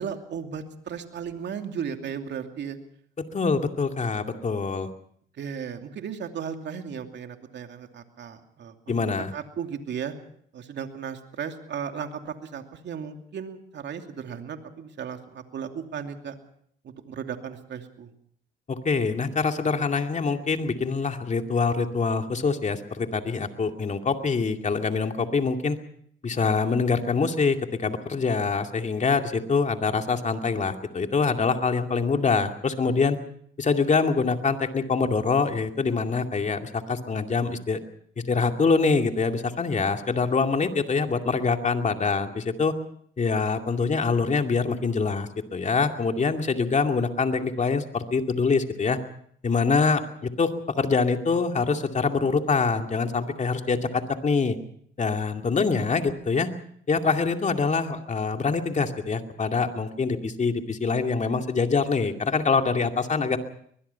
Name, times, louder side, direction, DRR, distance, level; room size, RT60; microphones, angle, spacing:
voice 1, 0.0-2.8 5.4-10.1 10.5-16.4 16.8-18.1, right 7 dB, 65° right, 5 dB, 2.7 m, -35 dB
voice 2, 3.3-4.9 8.9-9.3 18.7-25.8 26.2-33.2 33.6-37.8 38.3-42.7 43.2-49.0 49.4-54.6 55.0-56.5 56.9-63.4, left 4 dB, 35° left, 5 dB, 2.4 m, -25 dB
23.0 x 21.0 x 5.7 m, 0.64 s
cardioid pair, 90°, 20 cm